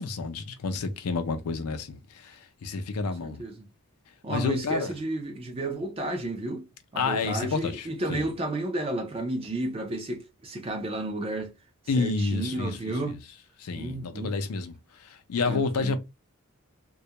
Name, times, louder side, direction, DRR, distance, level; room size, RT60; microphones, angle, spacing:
voice 1, 0.0-3.4 4.3-4.9 7.0-8.3 11.9-12.8 13.1-13.2 13.6-14.8 15.0-16.0, left 4 dB, 85° left, 0.5 m, -29 dB
voice 2, 3.0-3.7 4.2-6.6 6.9-11.5 11.9-13.2 13.8-14.3 15.5-16.0, right 2 dB, 25° right, 0.4 m, -32 dB
2.3 x 2.1 x 2.8 m
head